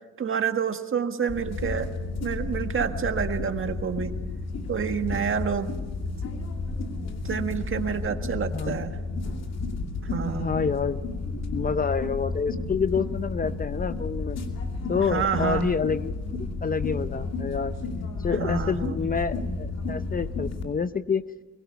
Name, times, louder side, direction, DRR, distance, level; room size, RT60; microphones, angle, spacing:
voice 1, 0.2-1.9 2.2-4.1 4.7-5.7 7.2-8.9 10.0-10.5 14.9-15.7 18.4-19.0, right 7 dB, 45° right, 7 dB, 1.7 m, -28 dB
sound 1, 1.3-20.6, left 3 dB, 60° left, 2.6 m, -32 dB
voice 2, 10.4-14.4 14.9-16.2 16.6-17.7 18.2-21.3, left 5 dB, 30° left, 13 dB, 0.7 m, -28 dB
24.0 x 21.5 x 5.8 m, 1.2 s
cardioid pair, 90°, 30 cm